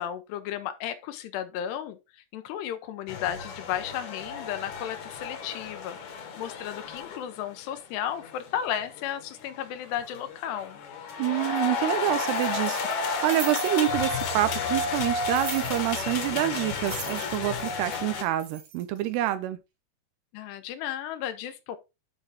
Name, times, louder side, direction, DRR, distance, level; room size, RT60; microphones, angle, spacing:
voice 1, 0.0-10.8 20.3-21.8, left 10 dB, 80° left, 2.9 m, -34 dB
sound 1, 3.1-18.2, left 4 dB, 60° left, 2.3 m, -32 dB
voice 2, 11.2-19.6, right 14 dB, 80° right, 2.7 m, -27 dB
sound 2, 12.3-14.6 15.3-16.5 16.7-19.1, right 5 dB, 55° right, 1.7 m, -41 dB
9.8 x 4.7 x 3.5 m
omnidirectional pair, 4.8 m